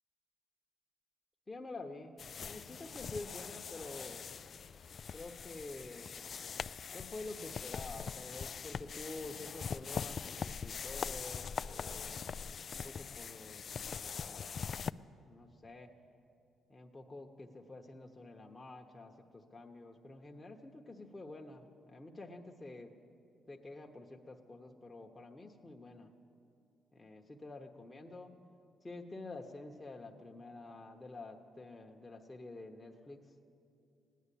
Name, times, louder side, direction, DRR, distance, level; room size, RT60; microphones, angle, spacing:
voice 1, 1.5-4.3 5.1-6.1 6.9-12.2 12.7-13.6 13.9-14.6 15.2-15.9 16.7-22.9 23.5-26.1 26.9-28.3 28.8-33.2, left 2 dB, 20° left, 1 dB, 1.0 m, -48 dB
sound 1, 2.2-14.9, left 6 dB, 50° left, 0.3 m, -42 dB
16.5 x 10.0 x 8.5 m, 2.6 s
cardioid pair, 80°, 0 cm